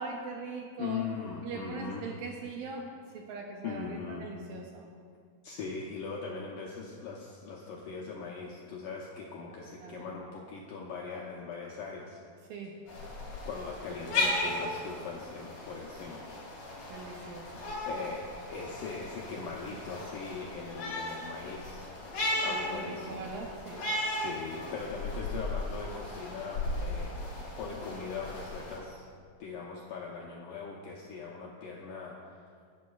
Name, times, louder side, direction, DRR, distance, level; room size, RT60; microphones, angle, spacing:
voice 1, 0.0-1.0 1.4-4.9 9.8-10.1 12.5-12.7 16.9-17.4 22.5-23.9, right 4 dB, 75° right, 1 dB, 2.2 m, -41 dB
voice 2, 0.8-2.1 3.6-4.3 5.4-12.2 13.5-16.3 17.9-21.9 22.4-23.3 24.1-27.3 27.6-29.1 29.4-32.4, left 5 dB, 80° left, -3 dB, 1.9 m, -40 dB
sound 1, 12.9-28.8, left 1 dB, 45° left, 2.9 m, -36 dB
17.5 x 8.3 x 2.3 m, 2.1 s
omnidirectional pair, 4.7 m